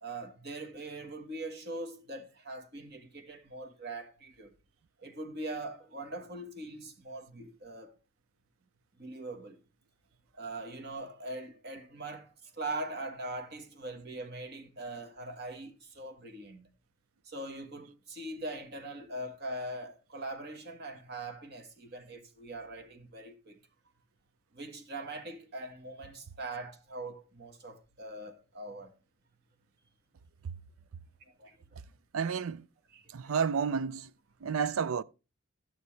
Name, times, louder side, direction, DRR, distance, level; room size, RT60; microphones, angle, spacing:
voice 1, 0.0-4.5 5.0-8.0 9.0-9.6 10.4-16.7 17.2-23.6 24.5-28.9 31.2-31.8 32.9-33.3, right 2 dB, 50° right, 1.5 m, -42 dB
voice 2, 32.1-32.7 33.1-34.1 34.4-35.0, right 6 dB, 75° right, 0.5 m, -31 dB
11.5 x 9.4 x 3.2 m
head